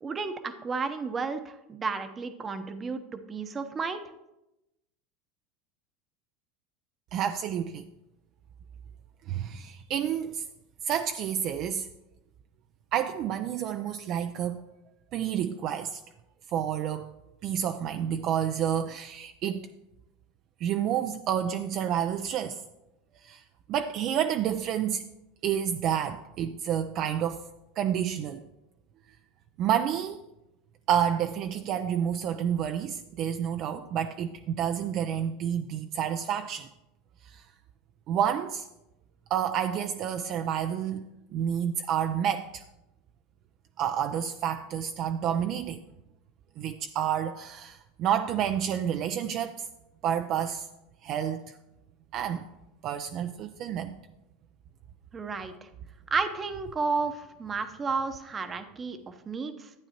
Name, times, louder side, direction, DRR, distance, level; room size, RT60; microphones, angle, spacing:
voice 1, 0.0-4.0 55.1-55.7 56.1-59.7, right 4 dB, 25° right, 0.8 m, -32 dB
voice 2, 7.1-7.8 9.3-10.5 10.8-11.9 12.9-14.6 15.1-16.0 16.5-17.1 17.4-19.6 20.6-22.6 23.2-23.4 23.7-25.0 25.4-27.4 27.8-28.5 29.6-30.2 30.9-36.7 37.2-37.4 38.1-38.7 39.3-42.6 43.8-45.8 46.6-49.7 50.0-50.7 51.0-51.6 52.1-52.5 52.8-54.0, right 9 dB, 50° right, 0.4 m, -29 dB
11.5 x 8.8 x 2.9 m
hypercardioid pair, 95°, 0 cm